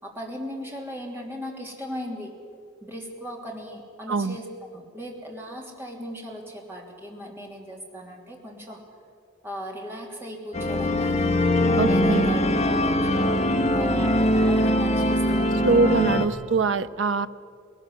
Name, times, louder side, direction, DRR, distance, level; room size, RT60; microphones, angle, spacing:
voice 1, 0.0-2.4 2.8-4.4 4.7-8.8 9.4-11.3 11.8-16.0, equal, 10° right, -1 dB, 3.2 m, -37 dB
sound 1, 10.5-16.3, left 1 dB, 35° left, 1.6 m, -22 dB
voice 2, 11.8-12.4 15.6-17.3, right 3 dB, 75° right, 12 dB, 0.7 m, -23 dB
20.5 x 19.0 x 8.3 m, 2.4 s
head